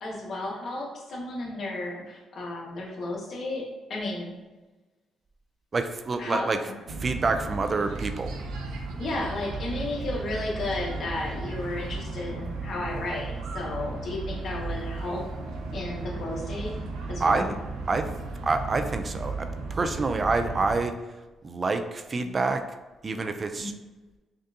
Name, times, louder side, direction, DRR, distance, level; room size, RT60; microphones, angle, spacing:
voice 1, 0.0-3.6 3.9-4.3 6.2-6.8 9.0-15.2 15.7-16.7 17.1-17.5 23.5-23.7, left 2 dB, 60° left, -3 dB, 1.0 m, -33 dB
voice 2, 5.7-6.6 7.0-8.3 17.2-17.5 17.9-18.1 18.4-20.9 21.4-22.6 23.0-23.7, right 3 dB, 35° right, 8 dB, 0.3 m, -27 dB
sound 1, 6.9-20.8, right 3 dB, 85° right, 0.5 m, -35 dB
5.2 x 2.5 x 2.4 m, 1.2 s
cardioid pair, 90°, 0 cm